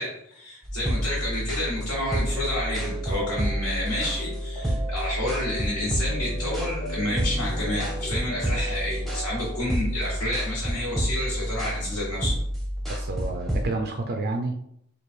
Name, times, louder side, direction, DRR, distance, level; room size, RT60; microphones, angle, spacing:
voice 1, 0.0-12.4, left 1 dB, 75° left, -10 dB, 1.3 m, -30 dB
sound 1, 0.6-13.6, equal, ahead, 0.6 m, -29 dB
sound 2, 1.9-9.6, right 2 dB, 20° left, 0.9 m, -39 dB
sound 3, 4.9-10.2, left 1 dB, 45° left, 0.8 m, -45 dB
voice 2, 12.9-14.6, right 3 dB, 45° right, 4 dB, 0.3 m, -30 dB
3.2 x 2.3 x 4.2 m, 0.74 s
head